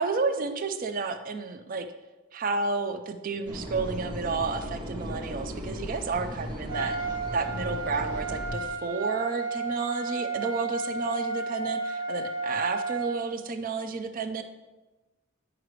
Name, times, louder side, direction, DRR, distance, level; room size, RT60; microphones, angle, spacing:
voice 1, 0.0-1.9 2.3-7.0 7.3-14.4, right 4 dB, 45° right, 9 dB, 0.4 m, -31 dB
sound 1, 3.5-8.7, equal, 25° right, 0.8 m, -37 dB
Trumpet, 6.7-13.2, right 4 dB, 70° right, 1.3 m, -32 dB
9.2 x 4.9 x 3.2 m, 1.1 s
head